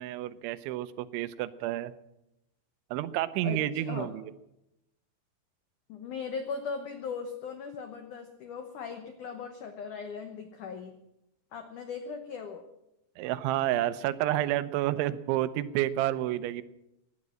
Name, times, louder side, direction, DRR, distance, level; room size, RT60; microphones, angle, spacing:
voice 1, 0.0-1.9 2.9-4.3 13.2-16.6, right 14 dB, 85° right, 14 dB, 3.1 m, -30 dB
voice 2, 3.4-4.1 5.9-11.0 11.5-12.7, left 5 dB, 85° left, 6 dB, 1.7 m, -38 dB
17.0 x 11.0 x 7.6 m, 0.86 s
omnidirectional pair, 5.3 m